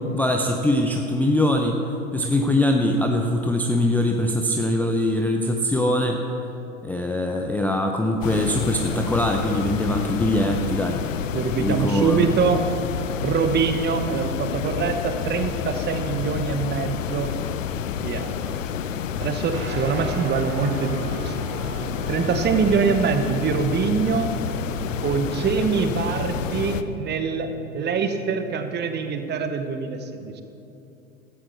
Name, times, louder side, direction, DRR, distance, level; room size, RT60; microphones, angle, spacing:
voice 1, 0.1-1.8 2.1-6.2 6.8-11.0 11.6-12.2, left 1 dB, 5° left, 2 dB, 0.6 m, -22 dB
sound 1, 8.2-26.8, left 8 dB, 70° left, 0.7 m, -29 dB
voice 2, 11.3-12.6 13.2-17.3 18.0-18.6 19.2-21.5 22.1-24.3 25.0-27.5 27.7-30.4, right 5 dB, 25° right, 8 dB, 1.1 m, -24 dB
Guitar, 19.5-29.4, right 8 dB, 45° right, 2.0 m, -38 dB
15.5 x 13.0 x 3.5 m, 2.8 s
figure-of-eight pair, 90°, 39 cm